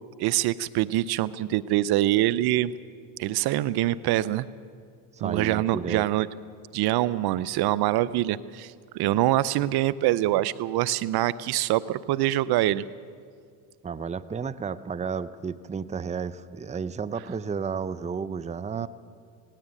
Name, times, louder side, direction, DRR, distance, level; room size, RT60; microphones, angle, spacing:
voice 1, 0.2-2.7 3.2-4.5 5.2-6.3 6.7-12.8 18.7-18.9, right 14 dB, 55° right, 18 dB, 0.7 m, -24 dB
voice 2, 5.1-6.0 13.8-18.9, right 6 dB, 15° right, 14 dB, 0.7 m, -32 dB
18.0 x 17.5 x 9.1 m, 2.2 s
supercardioid pair, 85°, 45 cm